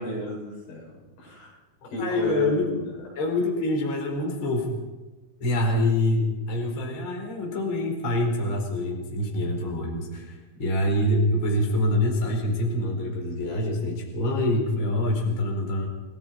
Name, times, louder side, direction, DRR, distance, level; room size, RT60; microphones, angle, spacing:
voice 1, 0.0-1.6 1.9-2.9 5.7-5.8, equal, 80° left, -4 dB, 10.5 m, -34 dB
voice 2, 2.0-2.8 3.2-4.8 5.4-15.9, left 1 dB, 25° left, 0 dB, 4.5 m, -25 dB
30.0 x 19.0 x 4.8 m, 1.2 s
omnidirectional pair, 5.9 m